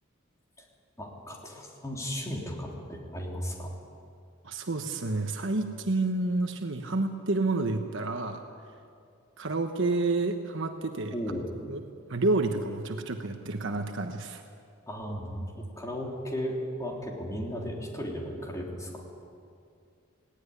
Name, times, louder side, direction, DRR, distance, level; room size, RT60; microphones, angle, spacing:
voice 1, 1.0-3.7 11.1-11.5 14.9-18.9, equal, 15° left, -1 dB, 3.6 m, -35 dB
voice 2, 4.4-8.4 9.4-11.1 11.7-11.8 12.1-14.4, right 2 dB, 65° right, 5 dB, 1.2 m, -29 dB
18.5 x 18.0 x 9.9 m, 2.3 s
head